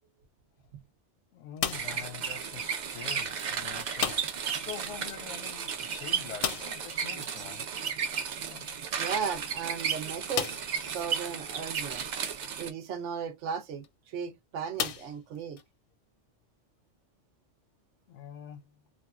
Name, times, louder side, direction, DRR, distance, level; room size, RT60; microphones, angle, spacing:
voice 1, 1.3-7.7 8.5-8.7 18.1-18.8, left 9 dB, 85° left, 0.9 m, -45 dB
sound 1, 1.6-2.1 4.0-4.5 4.8-4.9 5.2-5.3 6.4-6.9 8.7-8.8 9.4-9.5 10.3-10.8 11.5-11.6 13.7-13.9 14.8-15.6, left 8 dB, 60° left, 0.6 m, -34 dB
sound 2, 1.7-12.7, right 7 dB, 55° right, 0.5 m, -34 dB
voice 2, 9.0-12.1 12.6-15.6, right 6 dB, 90° right, 1.0 m, -36 dB
2.9 x 2.5 x 2.3 m
omnidirectional pair, 1.2 m